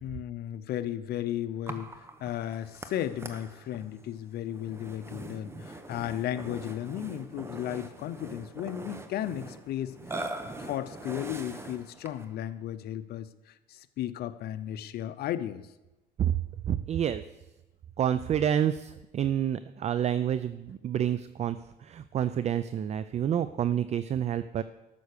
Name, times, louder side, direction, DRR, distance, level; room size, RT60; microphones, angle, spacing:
voice 1, 0.0-10.2 10.6-15.7, left 11 dB, 70° left, 11 dB, 0.8 m, -35 dB
Burping eructation, 1.7-12.4, right 2 dB, 15° right, 1.1 m, -42 dB
voice 2, 16.7-17.2 18.0-24.6, right 9 dB, 40° right, 14 dB, 0.5 m, -28 dB
13.0 x 6.9 x 6.7 m, 1.0 s
cardioid pair, 110°, 17 cm